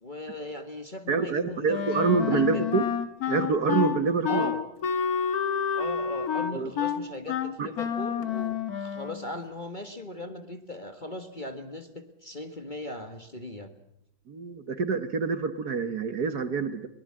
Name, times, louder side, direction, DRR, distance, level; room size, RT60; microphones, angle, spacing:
voice 1, 0.0-2.8 4.3-4.7 5.7-13.7, left 1 dB, 25° left, 6 dB, 1.5 m, -38 dB
voice 2, 1.1-2.8 3.3-4.5 6.5-6.7 7.6-7.7 14.3-16.9, right 4 dB, 55° right, 11 dB, 1.6 m, -26 dB
Wind instrument woodwind instrument, 1.7-9.3, left 7 dB, 50° left, 1.8 m, -29 dB
23.0 x 19.5 x 8.7 m, 0.78 s
omnidirectional pair, 2.3 m